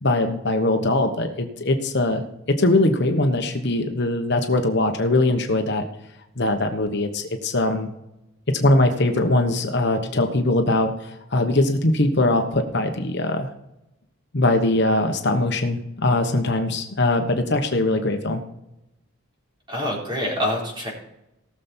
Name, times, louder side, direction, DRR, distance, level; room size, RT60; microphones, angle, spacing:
voice 1, 0.0-5.8 6.4-7.9 8.5-13.5 14.3-18.4, left 2 dB, 50° left, 5 dB, 1.1 m, -21 dB
voice 2, 19.7-20.9, left 1 dB, 20° right, -3 dB, 4.2 m, -26 dB
18.0 x 6.9 x 4.4 m, 0.87 s
head